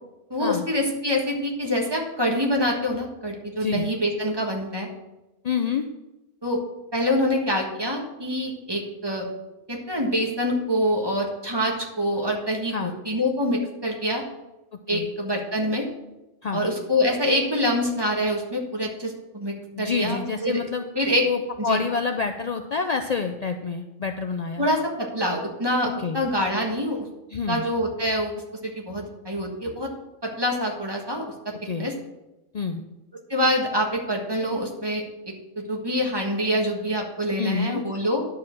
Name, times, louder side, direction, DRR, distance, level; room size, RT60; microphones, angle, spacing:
voice 1, 0.3-4.9 6.4-6.6 6.9-9.3 9.7-14.2 14.9-15.9 16.5-20.6 20.9-21.3 21.6-21.8 24.6-27.1 27.5-28.3 28.6-29.9 30.2-31.9 33.3-38.2, equal, 20° right, 0 dB, 1.5 m, -25 dB
voice 2, 3.6-3.9 5.4-5.9 12.7-13.0 14.9-15.1 16.4-16.7 19.7-24.7 26.0-26.2 27.3-27.6 31.7-31.9 32.5-32.8 37.4-37.8, left 5 dB, 65° left, 6 dB, 0.4 m, -27 dB
10.5 x 4.8 x 7.4 m, 1.0 s
omnidirectional pair, 1.4 m